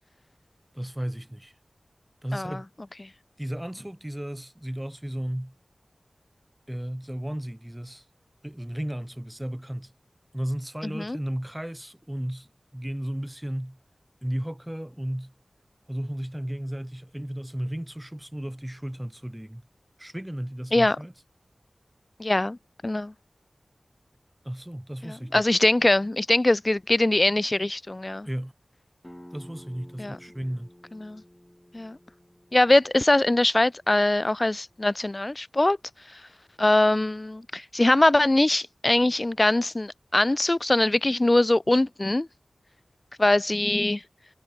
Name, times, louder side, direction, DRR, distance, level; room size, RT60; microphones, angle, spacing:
voice 1, 0.7-1.6 2.2-2.6 3.4-5.6 6.7-8.1 8.4-9.9 10.3-13.8 14.2-15.3 15.9-19.7 20.0-21.1 24.4-25.5 28.2-28.5 29.3-30.7, right 1 dB, 10° right, 3.0 m, -34 dB
voice 2, 22.2-22.6 22.8-23.1 25.3-28.3 30.0-30.2 31.0-31.2 31.7-32.0 32.5-35.8 36.1-36.2 36.6-42.3 43.2-44.0, left 2 dB, 30° left, 0.4 m, -22 dB
sound 1, 29.0-34.4, equal, 10° left, 4.4 m, -52 dB
wide cardioid pair, 70°, 0 cm